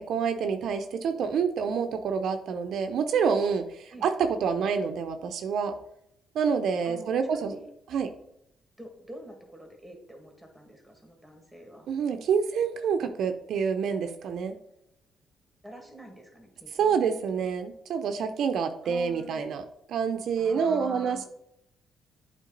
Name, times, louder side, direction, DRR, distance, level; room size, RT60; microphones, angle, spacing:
voice 1, 0.0-5.8 6.3-7.5 7.9-8.1 11.9-14.6 16.8-21.2, right 6 dB, 70° right, 7 dB, 0.5 m, -27 dB
voice 2, 6.8-7.7 8.8-11.9 15.6-17.0 17.3-17.5 18.8-19.4 20.4-21.3, right 1 dB, ahead, 2 dB, 2.0 m, -46 dB
8.2 x 3.6 x 3.9 m, 0.78 s
cardioid pair, 90°, 0 cm